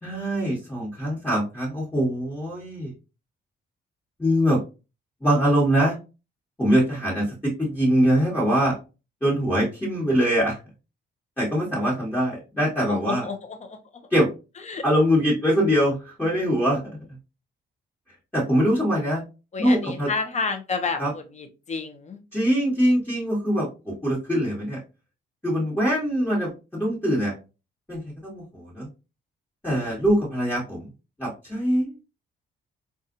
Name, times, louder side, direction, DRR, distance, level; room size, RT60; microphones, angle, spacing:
voice 1, 0.0-2.9 4.2-4.6 5.2-6.0 6.6-8.7 9.2-10.6 11.4-13.2 14.1-14.3 14.8-16.8 18.3-19.2 19.6-20.1 21.0-21.1 22.3-24.8 25.4-27.3 27.9-28.9 29.6-30.8 31.2-31.9, equal, 10° left, -7 dB, 1.5 m, -23 dB
voice 2, 12.9-14.1 14.7-14.8 19.5-22.2, left 4 dB, 35° left, 6 dB, 0.7 m, -30 dB
4.1 x 2.5 x 2.5 m, 0.30 s
cardioid pair, 90°, 20 cm